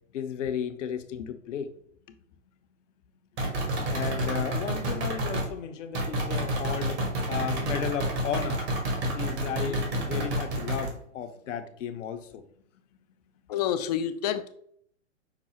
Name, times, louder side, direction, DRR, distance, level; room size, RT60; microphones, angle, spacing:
voice 1, 0.1-1.7 2.1-2.2 3.9-7.0 7.3-8.6 9.0-12.4, left 8 dB, 70° left, 8 dB, 0.8 m, -34 dB
sound 1, 3.4-5.5 5.9-10.9, right 1 dB, 60° right, 1.8 m, -29 dB
voice 2, 13.5-14.5, left 10 dB, 35° left, 10 dB, 0.4 m, -29 dB
5.9 x 2.1 x 4.3 m, 0.64 s
hypercardioid pair, 120°, 38 cm